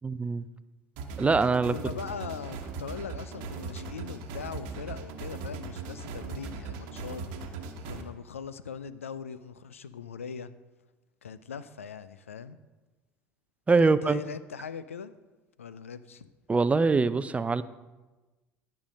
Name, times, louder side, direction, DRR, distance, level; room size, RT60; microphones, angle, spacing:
voice 1, 0.0-0.4 1.2-1.7 13.7-14.2 16.5-17.6, right 4 dB, 20° right, 15 dB, 0.5 m, -23 dB
sound 1, 1.0-8.0, right 4 dB, 65° right, 1.1 m, -39 dB
voice 2, 1.7-10.5 11.2-12.6 13.8-15.1 15.6-16.3, left 6 dB, 85° left, 15 dB, 0.4 m, -41 dB
11.5 x 5.7 x 5.1 m, 1.2 s
figure-of-eight pair, 65°, 7 cm